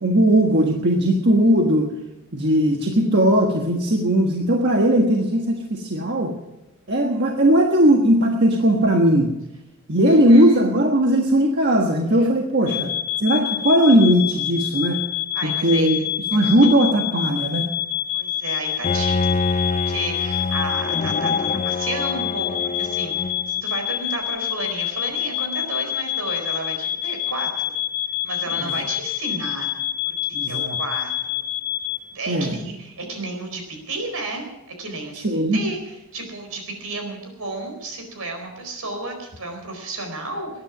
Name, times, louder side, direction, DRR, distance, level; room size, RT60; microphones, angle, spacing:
voice 1, 0.0-1.9 2.3-6.3 6.9-9.4 9.9-12.9 13.2-15.0 15.4-16.0 16.3-17.7 28.6-28.7 30.3-30.8 32.3-32.5 35.1-35.6, right 1 dB, 50° right, 1 dB, 1.5 m, -18 dB
voice 2, 10.0-10.6 12.2-12.3 12.7-12.8 15.3-16.0 16.3-16.5 18.1-27.7 28.2-29.8 30.2-31.5 32.1-35.3 35.5-35.8 36.1-40.5, right 2 dB, 75° right, 4 dB, 4.5 m, -32 dB
sound 1, 12.7-32.0, left 13 dB, 65° left, 2.2 m, -27 dB
Bowed string instrument, 18.8-23.6, left 3 dB, 30° left, 0.4 m, -25 dB
20.0 x 10.5 x 6.0 m, 0.94 s
head